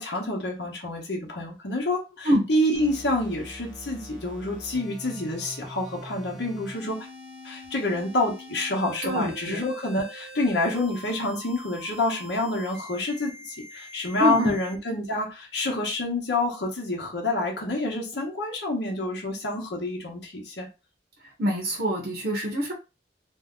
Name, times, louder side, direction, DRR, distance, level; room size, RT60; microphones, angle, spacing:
voice 1, 0.0-7.0 7.4-20.7, left 2 dB, 65° left, -1 dB, 0.9 m, -28 dB
sound 1, 2.7-14.7, equal, 5° right, 0.6 m, -44 dB
voice 2, 9.0-9.6 14.2-14.6 21.4-22.7, equal, 60° right, -1 dB, 0.8 m, -25 dB
2.7 x 2.2 x 3.5 m, 0.28 s
head